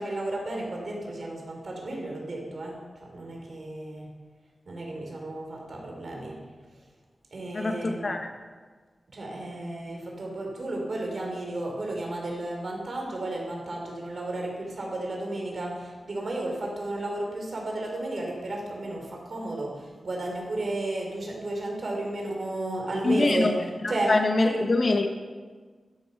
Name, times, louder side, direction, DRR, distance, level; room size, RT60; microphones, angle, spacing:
voice 1, 0.0-4.1 4.7-6.4 7.3-8.1 9.1-23.5 23.9-24.1 24.4-24.6, right 2 dB, 55° right, 0 dB, 3.9 m, -33 dB
voice 2, 7.5-8.3 23.0-23.5 23.8-25.1, left 2 dB, 45° left, 4 dB, 1.3 m, -24 dB
12.5 x 11.5 x 6.0 m, 1.5 s
wide cardioid pair, 130°, 0 cm